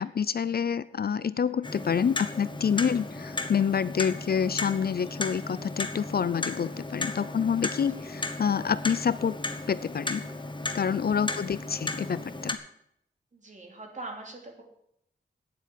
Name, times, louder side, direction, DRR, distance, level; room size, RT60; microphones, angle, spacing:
voice 1, 0.0-9.4 9.7-10.2 10.7-12.6, left 7 dB, 50° left, 16 dB, 0.4 m, -27 dB
Clock, 1.6-12.6, left 2 dB, 25° left, 1.0 m, -35 dB
voice 2, 13.3-14.6, right 2 dB, 40° right, 2 dB, 2.9 m, -44 dB
9.5 x 8.2 x 8.3 m, 0.75 s
wide cardioid pair, 120°, 20 cm